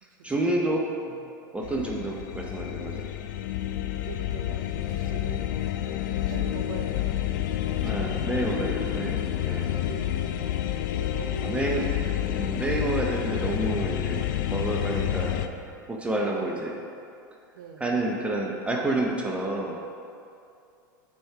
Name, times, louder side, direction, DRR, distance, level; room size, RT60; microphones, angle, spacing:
voice 1, 0.2-1.1 1.5-3.0 7.8-9.2 9.4-9.7 11.4-11.9 12.3-15.4 15.9-16.7 17.8-19.8, right 2 dB, 10° right, -1 dB, 0.7 m, -29 dB
sound 1, 1.6-15.5, left 12 dB, 70° left, 0.4 m, -29 dB
voice 2, 1.8-2.2 2.7-2.9 3.7-3.8 4.0-5.5 6.1-6.9 7.7-8.5 9.6-10.4 11.0-11.8 13.4-13.5 16.2-16.7 17.5-18.1, right 6 dB, 75° right, 5 dB, 0.7 m, -43 dB
6.3 x 4.3 x 4.7 m, 2.6 s
hypercardioid pair, 100°, 11 cm